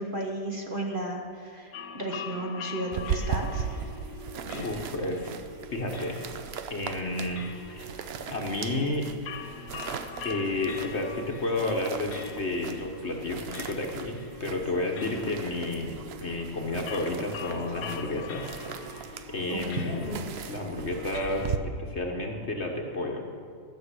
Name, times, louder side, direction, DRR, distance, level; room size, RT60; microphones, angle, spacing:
voice 1, 0.0-3.7 15.0-15.4 19.5-20.2, right 1 dB, 35° right, 0 dB, 1.3 m, -34 dB
sound 1, 1.7-21.5, left 4 dB, 75° left, 1.4 m, -43 dB
sound 2, 2.9-21.6, right 7 dB, 65° right, 0.6 m, -38 dB
voice 2, 4.5-5.3 5.7-6.2 6.7-7.4 7.7-7.9 8.3-9.1 10.2-15.9 16.2-18.4 18.8-18.9 19.3-20.2 20.5-23.3, left 2 dB, 45° left, 1 dB, 1.3 m, -31 dB
13.0 x 6.8 x 8.2 m, 2.1 s
omnidirectional pair, 1.8 m